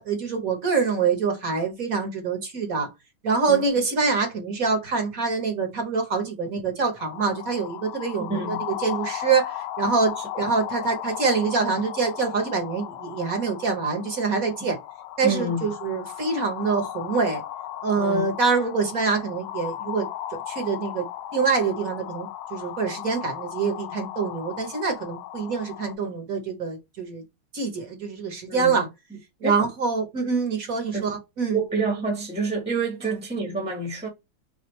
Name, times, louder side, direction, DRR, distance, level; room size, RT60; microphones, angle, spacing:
voice 1, 0.0-2.9 3.2-14.8 15.2-17.4 17.8-20.1 20.5-21.1 21.3-27.2 27.5-28.9 29.4-31.6, right 4 dB, 50° right, 1.5 m, -25 dB
sound 1, 7.0-26.0, left 12 dB, 90° left, 1.4 m, -36 dB
voice 2, 8.3-8.6 10.2-10.3 15.2-15.7 18.0-18.3 28.5-28.9 29.4-29.6 30.9-31.1 31.5-34.1, right 3 dB, 5° right, 1.1 m, -28 dB
6.0 x 2.6 x 3.2 m
omnidirectional pair, 2.1 m